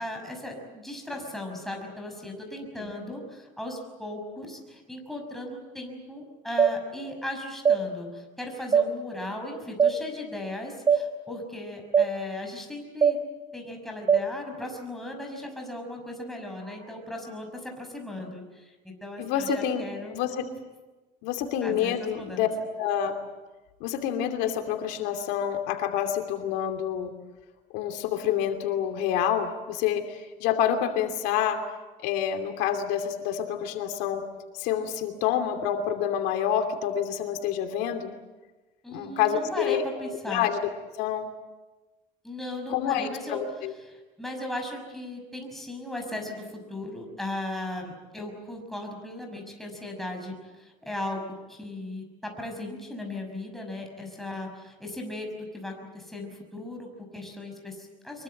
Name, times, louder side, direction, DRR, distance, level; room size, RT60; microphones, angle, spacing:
voice 1, 0.0-13.2 13.5-20.2 21.6-22.5 38.8-40.4 42.2-43.4 43.9-51.2 51.5-58.2, left 1 dB, ahead, 1 dB, 6.0 m, -37 dB
sound 1, 6.6-6.7 7.6-7.8 8.7-8.9 9.8-9.9 10.9-11.0 11.9-12.1 13.0-13.2 14.1-14.2, right 7 dB, 25° right, 2.8 m, -20 dB
voice 2, 19.2-20.5 21.2-22.5 22.8-23.2 23.8-27.1 27.7-31.6 32.0-34.2 34.6-38.1 38.9-39.8 40.3-40.6 41.0-41.3 42.7-43.7, left 9 dB, 85° left, 5 dB, 2.8 m, -28 dB
24.5 x 23.0 x 7.9 m, 1.2 s
cardioid pair, 140°, 16 cm